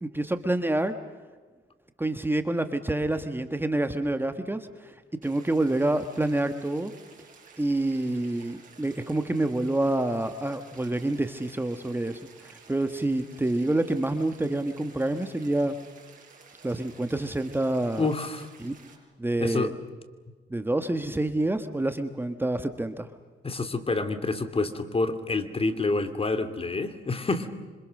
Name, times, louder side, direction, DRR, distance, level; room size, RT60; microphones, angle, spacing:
voice 1, 0.0-0.9 2.0-4.9 5.2-6.9 7.6-15.8 16.6-18.1 18.6-18.7 19.2-19.7 20.5-23.1, right 2 dB, 10° right, 9 dB, 1.5 m, -27 dB
sound 1, 5.2-19.0, right 5 dB, 40° right, 7.1 m, -53 dB
voice 2, 18.0-18.5 19.4-19.7 23.4-27.5, left 3 dB, 30° left, 10 dB, 2.7 m, -28 dB
27.0 x 26.0 x 6.6 m, 1.4 s
cardioid pair, 90°, 20 cm